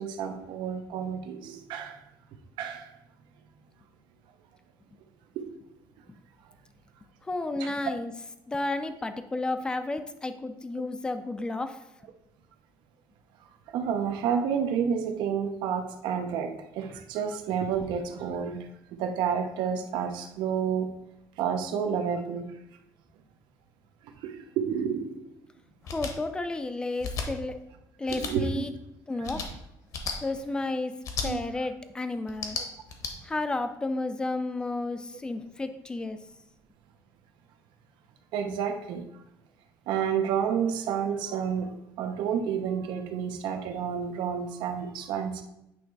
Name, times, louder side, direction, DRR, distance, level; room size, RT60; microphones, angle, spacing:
voice 1, 0.0-2.0 2.6-2.9 5.4-5.5 7.6-7.7 13.7-18.6 19.0-20.9 21.4-22.5 24.2-25.2 28.1-28.6 29.2-29.4 31.2-31.4 32.5-32.6 38.3-39.0 39.9-41.7 42.0-45.4, right 7 dB, 80° right, 6 dB, 0.8 m, -30 dB
voice 2, 7.3-8.1 8.5-11.8 25.9-27.5 28.0-28.7 29.1-29.4 30.2-30.9 31.2-32.6 33.2-36.2, left 2 dB, 10° left, 9 dB, 0.4 m, -32 dB
sound 1, 25.8-26.1 27.0-27.3 28.1-28.3 29.2-29.5 29.9-30.2 31.0-31.3 32.3-33.1, left 5 dB, 50° left, 0.9 m, -33 dB
8.8 x 3.1 x 4.6 m, 0.85 s
cardioid pair, 175°, 8 cm